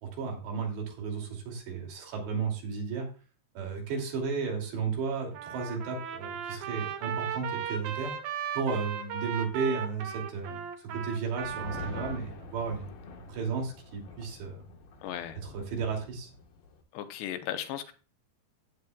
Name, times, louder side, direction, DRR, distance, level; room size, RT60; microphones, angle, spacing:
voice 1, 0.0-3.1 3.5-8.1 8.5-12.9 13.3-14.6 15.4-16.3, right 5 dB, 85° right, 1 dB, 5.0 m, -34 dB
Trumpet, 5.3-12.2, right 8 dB, 70° right, 2.7 m, -37 dB
sound 1, 11.4-16.8, left 4 dB, 65° left, 3.1 m, -45 dB
voice 2, 15.0-15.4 16.9-17.9, left 11 dB, 80° left, 8 dB, 3.1 m, -36 dB
15.5 x 9.2 x 2.4 m, 0.36 s
omnidirectional pair, 4.8 m